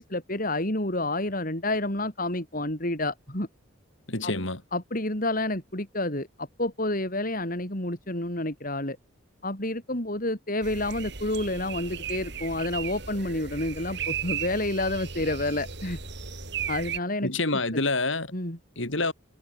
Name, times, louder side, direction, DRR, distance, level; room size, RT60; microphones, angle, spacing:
voice 1, 0.0-3.5 4.2-4.3 4.7-9.0 9.4-16.0 16.7-17.3 17.7-17.8 18.3-18.6, left 1 dB, 45° left, 5.6 m, -29 dB
voice 2, 4.1-4.6 17.2-18.3 18.8-19.1, left 2 dB, 70° left, 4.6 m, -27 dB
sound 1, 10.6-17.0, right 7 dB, 60° right, 4.8 m, -36 dB
head